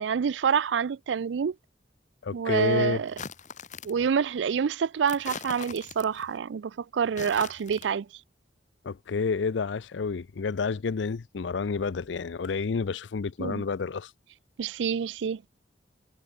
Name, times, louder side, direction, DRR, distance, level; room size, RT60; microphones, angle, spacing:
voice 1, 0.0-1.5 2.3-3.1 3.8-8.1 13.4-13.6 14.6-15.4, right 7 dB, 85° right, 0.4 m, -27 dB
voice 2, 2.2-3.0 8.8-14.1, left 5 dB, 90° left, 0.5 m, -29 dB
sound 1, 3.1-4.1 5.1-6.3 7.0-7.9, left 5 dB, 45° left, 1.6 m, -41 dB
head